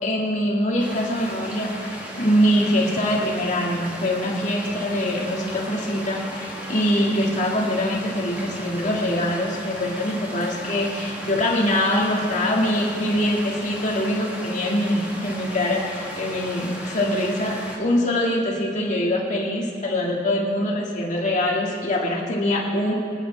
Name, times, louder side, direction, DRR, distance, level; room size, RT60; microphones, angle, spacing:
voice 1, 0.0-22.9, left 1 dB, 45° left, -2 dB, 2.0 m, -23 dB
sound 1, 0.8-17.8, equal, 10° right, 2.4 m, -36 dB
25.5 x 9.4 x 3.4 m, 2.5 s
head